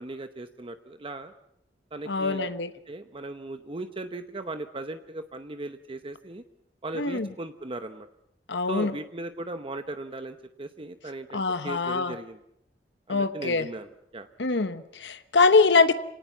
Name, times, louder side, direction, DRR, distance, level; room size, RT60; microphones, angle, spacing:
voice 1, 0.0-1.3 1.9-2.5 2.9-6.4 6.8-8.1 8.7-12.4 13.1-14.3, right 2 dB, 30° right, 9 dB, 0.8 m, -38 dB
voice 2, 2.1-2.7 7.0-7.3 8.5-8.9 11.3-12.1 13.1-13.7 14.4-15.9, left 4 dB, 85° left, 11 dB, 1.0 m, -23 dB
26.0 x 18.5 x 7.2 m, 0.78 s
head